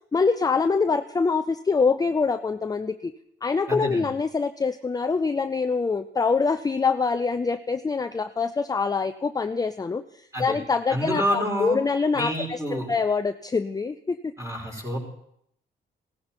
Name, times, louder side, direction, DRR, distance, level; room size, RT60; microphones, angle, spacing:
voice 1, 0.1-3.1 3.4-14.3 14.7-14.8, left 4 dB, 20° left, 9 dB, 0.5 m, -25 dB
voice 2, 3.7-4.1 10.3-10.6 10.9-11.8 12.1-12.9 14.4-15.0, equal, 15° right, -1 dB, 5.1 m, -28 dB
16.5 x 13.5 x 4.4 m, 0.73 s
cardioid pair, 90°, 20 cm